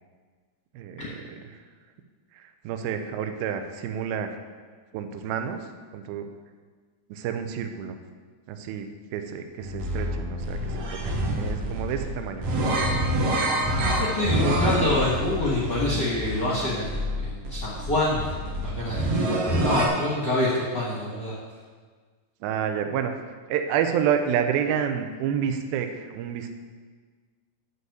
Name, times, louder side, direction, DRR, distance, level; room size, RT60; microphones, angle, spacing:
voice 1, 0.7-1.6 2.3-4.4 4.9-5.7 5.9-6.3 7.1-8.0 8.5-8.9 9.1-13.1 14.2-14.6 22.4-23.2 23.5-26.5, right 8 dB, 80° right, 7 dB, 2.6 m, -29 dB
sound 1, 9.6-19.9, right 1 dB, 55° right, 1.9 m, -27 dB
voice 2, 13.7-18.2 18.6-21.3, left 1 dB, 55° left, -5 dB, 1.2 m, -26 dB
9.7 x 5.4 x 7.9 m, 1.5 s
omnidirectional pair, 4.3 m